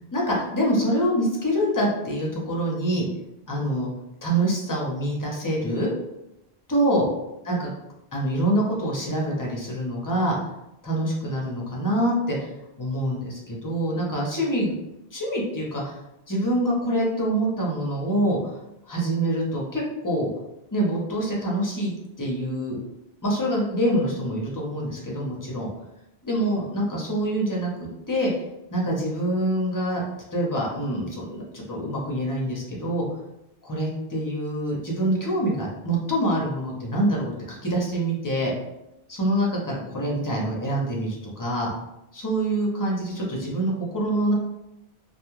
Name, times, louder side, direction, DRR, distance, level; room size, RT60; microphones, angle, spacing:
voice 1, 0.1-3.0 3.5-3.9 4.2-5.9 6.7-7.1 7.4-7.7 8.1-10.3 10.8-14.7 15.1-16.0 16.3-18.5 18.9-20.3 20.7-21.9 22.2-22.8 23.2-25.7 26.2-27.7 28.1-28.3 28.7-30.0 30.3-33.1 33.6-38.5 39.1-41.7 42.1-44.3, right 1 dB, 25° left, -3 dB, 0.5 m, -25 dB
2.3 x 2.2 x 3.0 m, 0.89 s
omnidirectional pair, 1.0 m